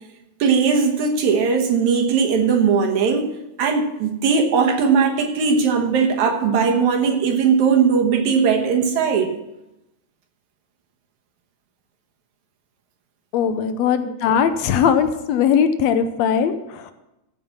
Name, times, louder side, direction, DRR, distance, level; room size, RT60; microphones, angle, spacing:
voice 1, 0.4-3.3 3.6-9.3, right 5 dB, 75° right, 3 dB, 2.6 m, -19 dB
voice 2, 13.3-16.9, left 7 dB, 75° left, 10 dB, 1.8 m, -19 dB
14.5 x 5.5 x 5.8 m, 0.92 s
omnidirectional pair, 3.3 m